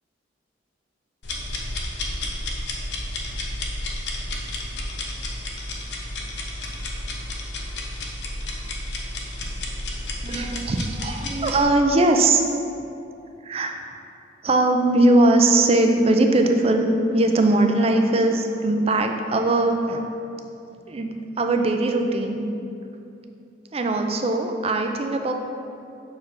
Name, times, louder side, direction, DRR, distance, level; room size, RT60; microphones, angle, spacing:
sound 1, 1.2-11.6, left 1 dB, 65° left, 0.9 m, -31 dB
voice 1, 10.2-12.4 13.4-13.8 14.4-20.1 20.9-22.5 23.7-25.3, right 2 dB, 30° right, 4 dB, 0.5 m, -20 dB
6.8 x 4.8 x 4.6 m, 2.6 s
head